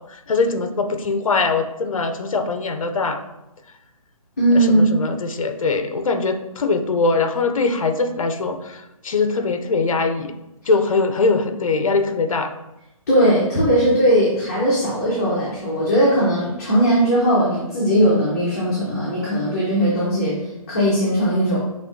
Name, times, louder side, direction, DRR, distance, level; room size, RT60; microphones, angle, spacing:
voice 1, 0.0-3.2 4.7-10.3 10.7-12.5, left 4 dB, 60° left, 8 dB, 0.6 m, -22 dB
voice 2, 4.4-4.9 13.1-21.6, equal, 25° left, -8 dB, 0.9 m, -18 dB
6.0 x 3.1 x 2.6 m, 0.96 s
hypercardioid pair, 175°, 19 cm